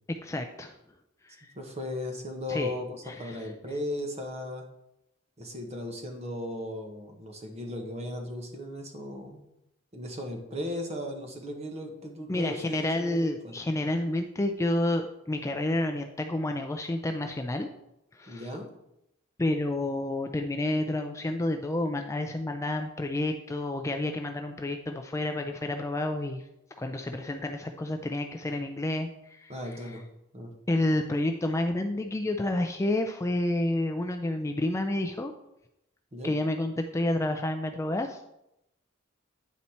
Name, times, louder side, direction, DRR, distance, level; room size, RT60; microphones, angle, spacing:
voice 1, 0.1-0.7 1.2-1.5 2.5-2.7 3.1-3.5 12.3-17.7 18.1-18.5 19.4-26.4 26.8-29.5 30.7-35.3 36.2-38.2, left 1 dB, 15° left, 5 dB, 0.4 m, -29 dB
voice 2, 1.5-4.6 5.4-9.4 9.9-13.6 18.3-18.7 29.5-30.0 30.3-30.5 36.1-36.3, left 1 dB, 30° right, 3 dB, 1.2 m, -36 dB
9.4 x 4.2 x 4.3 m, 0.84 s
head